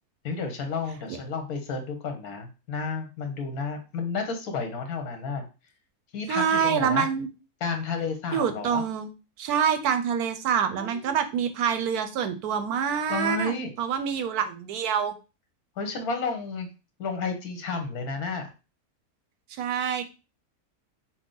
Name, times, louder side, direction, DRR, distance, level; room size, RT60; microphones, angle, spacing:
voice 1, 0.2-5.5 6.1-7.1 7.6-8.8 10.8-11.4 13.1-13.7 15.8-16.7 17.0-18.5, left 4 dB, 75° left, 6 dB, 1.4 m, -31 dB
voice 2, 6.3-7.3 8.3-9.1 9.4-13.5 13.8-15.1 19.6-20.0, right 7 dB, 85° right, 9 dB, 1.2 m, -26 dB
6.0 x 2.1 x 3.8 m, 0.30 s
omnidirectional pair, 1.6 m